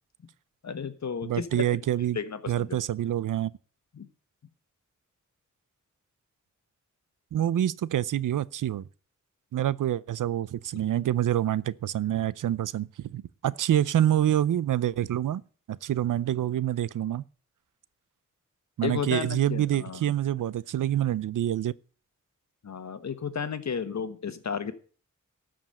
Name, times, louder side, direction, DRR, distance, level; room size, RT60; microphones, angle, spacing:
voice 1, 0.6-1.7 2.1-2.8 3.9-4.1 18.8-20.1 22.6-24.7, left 6 dB, 65° left, 1.2 m, -33 dB
voice 2, 1.2-2.2 2.5-3.5 7.3-8.8 9.5-15.4 15.7-17.2 18.8-21.7, right 11 dB, 85° right, 0.5 m, -27 dB
12.5 x 5.2 x 7.6 m
cardioid pair, 65°, 31 cm